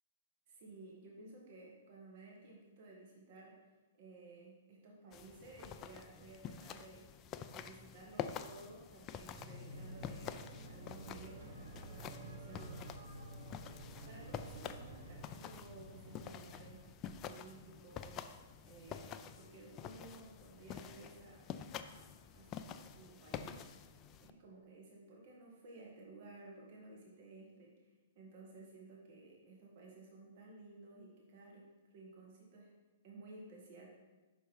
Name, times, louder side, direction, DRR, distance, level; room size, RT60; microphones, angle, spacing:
voice 1, 0.5-3.6 4.0-7.1 7.5-12.9 13.4-13.5 14.0-18.2 18.6-21.5 21.8-23.7 24.2-33.9, right 2 dB, 55° right, -2 dB, 1.5 m, -56 dB
sound 1, 5.1-24.3, left 8 dB, 30° left, 0.3 m, -48 dB
sound 2, 9.3-16.7, right 1 dB, 70° right, 1.0 m, -51 dB
5.5 x 4.5 x 4.6 m, 1.2 s
hypercardioid pair, 125°, 0 cm